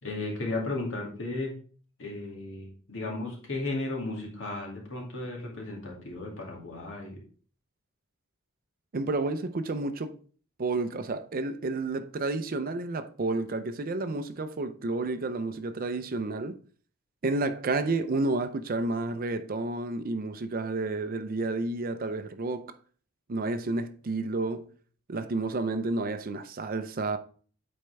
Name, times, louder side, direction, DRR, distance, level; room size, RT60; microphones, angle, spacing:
voice 1, 0.0-1.5 2.0-7.2, left 2 dB, 65° left, 2.2 m, -35 dB
voice 2, 8.9-10.2 10.6-16.6 17.2-22.7 23.3-24.7 25.1-27.2, right 3 dB, 45° right, 0.5 m, -30 dB
8.5 x 4.4 x 3.3 m
head